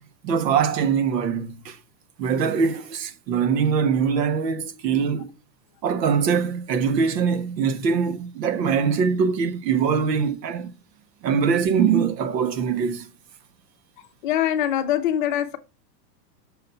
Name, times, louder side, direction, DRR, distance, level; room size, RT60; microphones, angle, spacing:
voice 1, 0.2-1.8 2.2-5.3 5.8-10.7 11.2-13.1, right 6 dB, 75° right, 1.5 m, -22 dB
voice 2, 14.2-15.6, left 11 dB, 30° left, 0.7 m, -23 dB
6.5 x 4.2 x 5.7 m
supercardioid pair, 175°, 50 cm